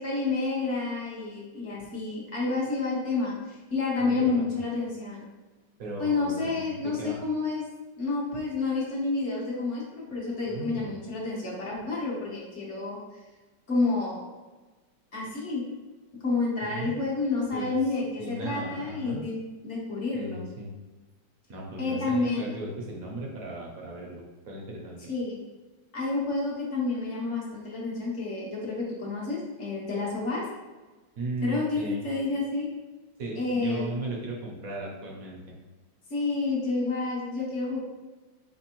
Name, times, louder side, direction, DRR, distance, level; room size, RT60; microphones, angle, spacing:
voice 1, 0.0-5.3 6.0-7.6 8.0-13.0 13.7-14.2 15.1-15.6 16.2-19.4 19.6-20.4 21.8-22.5 25.1-25.4 25.9-30.4 31.4-32.7 33.3-33.8 36.1-37.8, left 3 dB, 45° left, -4 dB, 1.2 m, -29 dB
voice 2, 4.0-4.6 5.8-7.2 10.5-10.9 16.6-16.9 17.5-17.8 18.2-19.2 20.1-20.7 21.5-25.0 31.2-32.0 33.2-35.6, right 2 dB, 60° right, -1 dB, 0.9 m, -37 dB
4.6 x 3.4 x 2.9 m, 1.2 s
omnidirectional pair, 2.2 m